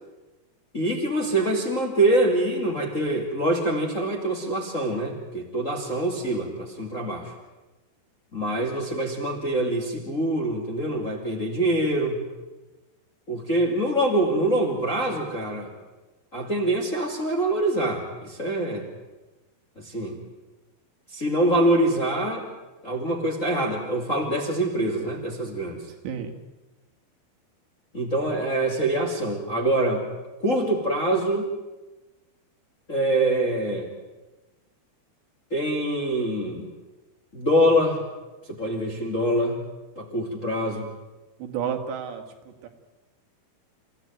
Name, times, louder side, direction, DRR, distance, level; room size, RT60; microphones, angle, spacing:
voice 1, 0.7-7.3 8.3-12.2 13.3-15.7 16.3-18.9 19.8-20.2 21.1-22.4 22.8-25.8 27.9-30.0 30.4-31.5 32.9-33.9 35.5-36.7 37.3-38.0 38.5-39.6 40.0-40.9, right 1 dB, 25° left, 1 dB, 2.1 m, -24 dB
voice 2, 26.0-26.4 41.4-42.2 42.6-42.7, right 8 dB, 75° right, 5 dB, 4.2 m, -30 dB
28.5 x 15.5 x 9.4 m, 1.1 s
omnidirectional pair, 5.1 m